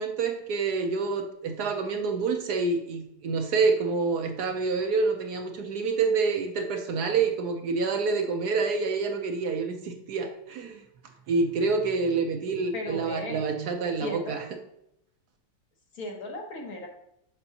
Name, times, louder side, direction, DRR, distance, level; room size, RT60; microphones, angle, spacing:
voice 1, 0.0-10.8 11.3-14.4, right 4 dB, 65° right, 4 dB, 1.2 m, -27 dB
voice 2, 12.7-13.4 14.0-14.4 15.9-16.9, left 1 dB, 55° left, 1 dB, 1.4 m, -36 dB
6.9 x 5.8 x 2.8 m, 0.78 s
omnidirectional pair, 2.0 m